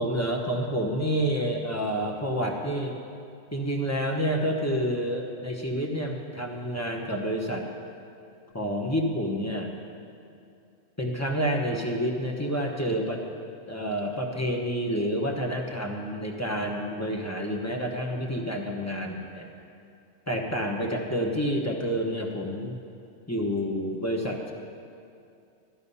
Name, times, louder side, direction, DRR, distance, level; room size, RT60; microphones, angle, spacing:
voice 1, 0.0-3.0 3.5-7.6 8.5-9.7 11.0-13.2 13.7-19.5 20.3-22.8 23.3-24.5, equal, 15° left, 0 dB, 1.1 m, -29 dB
14.0 x 10.0 x 5.6 m, 2.5 s
omnidirectional pair, 1.3 m